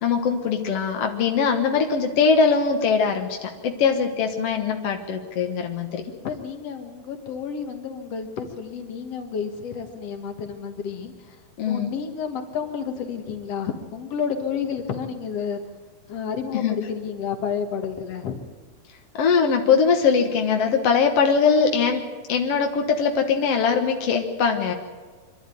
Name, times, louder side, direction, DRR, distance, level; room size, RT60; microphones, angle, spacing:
voice 1, 0.0-6.0 11.6-11.9 16.5-16.7 19.1-22.0 22.3-24.7, left 5 dB, 75° left, 3 dB, 1.4 m, -21 dB
voice 2, 6.0-11.4 11.6-15.6 16.0-18.4, left 6 dB, 55° left, 6 dB, 1.8 m, -31 dB
25.0 x 12.0 x 9.2 m, 1.5 s
omnidirectional pair, 4.9 m